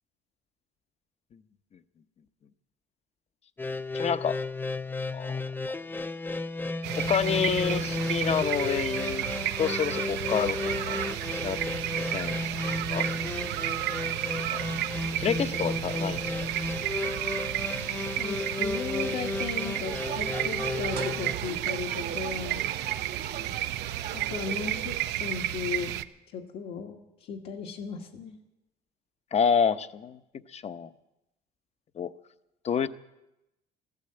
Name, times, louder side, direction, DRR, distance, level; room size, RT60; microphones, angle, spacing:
sound 1, 3.6-21.3, left 2 dB, 10° left, 0.5 m, -33 dB
voice 1, 3.9-4.4 5.1-5.3 7.0-9.3 9.6-10.6 10.9-11.6 12.1-12.4 12.9-13.1 14.5-14.6 15.2-16.9 29.3-30.2 30.5-30.9 32.0-32.1 32.6-32.9, left 7 dB, 40° left, 13 dB, 0.8 m, -28 dB
sound 2, 6.8-26.0, right 13 dB, 90° right, 0.6 m, -32 dB
voice 2, 18.2-22.6 24.1-25.9 26.3-28.4, left 6 dB, 75° left, 0 dB, 1.7 m, -36 dB
sound 3, 19.8-25.1, right 8 dB, 65° right, 1.3 m, -39 dB
14.5 x 12.0 x 7.8 m, 0.90 s
cardioid pair, 110°, 17 cm